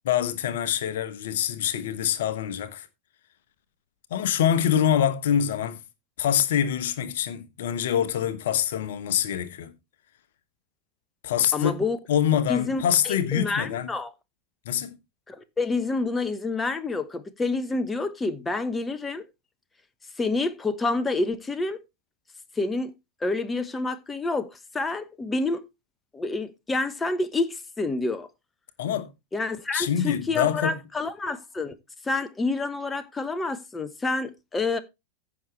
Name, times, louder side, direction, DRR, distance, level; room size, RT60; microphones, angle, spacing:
voice 1, 0.0-2.9 4.1-5.8 6.2-9.7 11.2-11.7 12.1-13.9 14.6-15.0 28.8-29.1 29.7-30.8, left 9 dB, 55° left, 1.1 m, -25 dB
voice 2, 11.5-12.0 12.5-14.1 15.3-19.2 20.2-21.8 22.6-22.9 23.2-25.6 26.1-28.3 29.3-31.8 32.0-34.8, left 3 dB, 15° left, 1.1 m, -28 dB
15.0 x 6.1 x 3.3 m
figure-of-eight pair, 90°, 0 cm